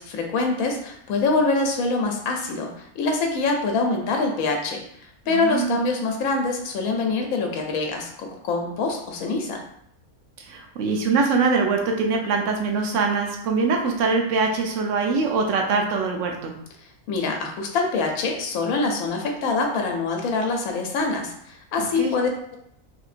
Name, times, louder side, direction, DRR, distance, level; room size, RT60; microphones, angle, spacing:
voice 1, 0.0-4.8 5.3-9.6 17.1-22.6, left 3 dB, 75° left, 2 dB, 1.0 m, -25 dB
voice 2, 5.3-5.8 10.4-16.6 21.8-22.1, right 4 dB, 65° right, 2 dB, 0.9 m, -23 dB
3.6 x 2.8 x 2.4 m, 0.70 s
omnidirectional pair, 1.5 m